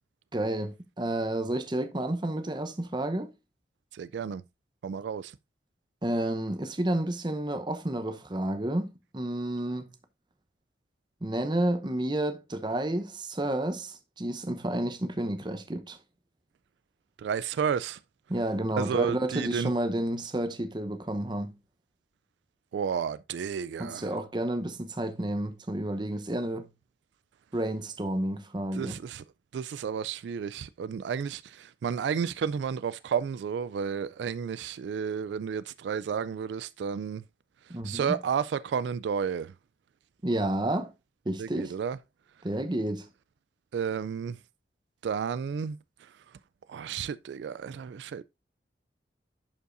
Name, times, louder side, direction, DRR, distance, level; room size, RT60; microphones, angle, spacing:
voice 1, 0.3-3.3 6.0-9.9 11.2-16.0 18.3-21.5 23.8-26.7 27.5-29.0 37.7-38.2 40.2-40.9 41.3-41.7 42.4-43.1, right 1 dB, 25° right, 0.8 m, -30 dB
voice 2, 3.9-4.4 4.8-5.3 17.2-18.0 18.8-19.7 22.7-24.1 28.7-29.2 29.5-37.2 37.8-39.5 41.4-42.0 43.7-44.4 45.0-46.1 46.7-48.2, right 7 dB, 80° right, 0.3 m, -32 dB
11.0 x 5.4 x 2.5 m
head